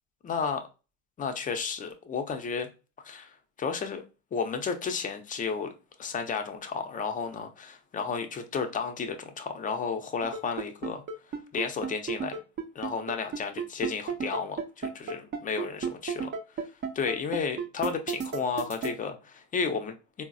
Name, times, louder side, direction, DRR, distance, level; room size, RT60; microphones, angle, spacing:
voice 1, 0.2-0.6 1.2-2.7 3.0-3.3 3.6-4.0 4.3-5.7 6.0-11.0 11.5-12.4 12.7-16.3 16.9-20.2, left 5 dB, 20° left, 0.5 m, -32 dB
sound 1, 10.2-18.9, right 6 dB, 30° right, 0.5 m, -32 dB
3.8 x 2.0 x 2.5 m
hypercardioid pair, 85°, 37 cm